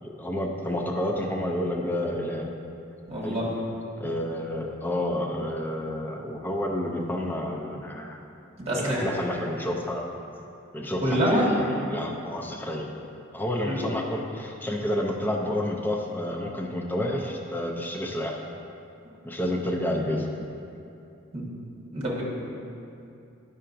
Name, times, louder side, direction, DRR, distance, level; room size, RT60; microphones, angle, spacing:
voice 1, 0.0-2.5 3.2-3.4 4.0-8.2 8.8-10.1 10.7-12.9 13.3-18.4 19.2-20.3, left 1 dB, 10° left, 0 dB, 0.4 m, -30 dB
voice 2, 3.1-3.5 8.6-9.0 11.0-11.5 13.6-13.8 21.3-21.5 21.9-22.2, equal, 30° right, -5 dB, 1.5 m, -26 dB
9.9 x 5.5 x 2.6 m, 2.7 s
head